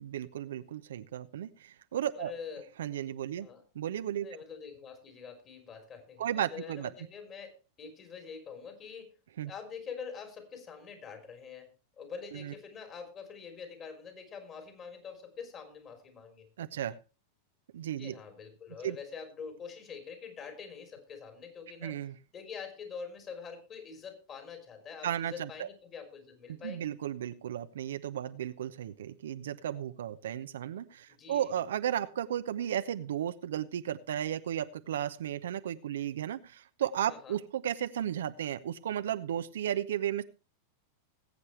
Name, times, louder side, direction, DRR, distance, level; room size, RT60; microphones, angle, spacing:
voice 1, 0.0-2.3 2.8-3.5 3.7-4.3 6.2-6.9 9.4-9.5 12.3-12.5 16.6-17.0 17.7-18.2 18.8-19.0 21.8-22.1 25.0-25.7 26.6-40.2, right 10 dB, 70° right, 12 dB, 0.7 m, -34 dB
voice 2, 2.1-2.7 3.4-3.6 4.2-7.5 7.8-9.2 9.4-16.5 17.9-22.0 22.3-26.9 31.1-31.5 37.1-37.4, left 6 dB, 35° left, 7 dB, 3.8 m, -45 dB
20.5 x 8.3 x 3.2 m, 0.32 s
figure-of-eight pair, 95°, 0 cm